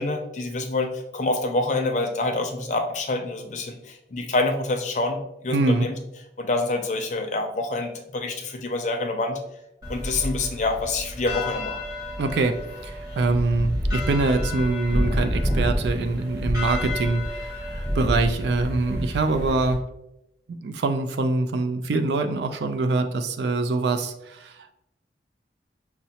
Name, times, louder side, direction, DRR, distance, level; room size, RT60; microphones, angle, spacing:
voice 1, 0.0-6.0 6.4-9.4 9.9-11.8, left 2 dB, 40° left, 4 dB, 0.5 m, -27 dB
voice 2, 5.5-5.9 12.2-12.6 12.8-19.8 20.6-24.5, right 3 dB, 75° right, 8 dB, 0.4 m, -24 dB
sound 1, 9.8-19.7, equal, 20° right, 1.1 m, -29 dB
5.7 x 2.0 x 2.8 m, 0.84 s
head